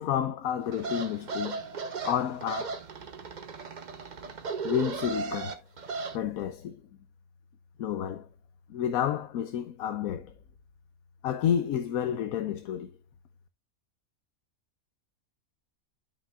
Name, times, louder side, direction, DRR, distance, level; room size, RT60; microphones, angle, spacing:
voice 1, 0.0-1.6 2.0-2.8 4.6-5.6 6.1-6.8 7.8-8.3 8.7-10.3 11.2-12.9, left 9 dB, 80° left, 1.1 m, -30 dB
sound 1, 0.7-6.2, right 4 dB, 40° right, 0.8 m, -36 dB
12.0 x 5.6 x 2.3 m
omnidirectional pair, 1.5 m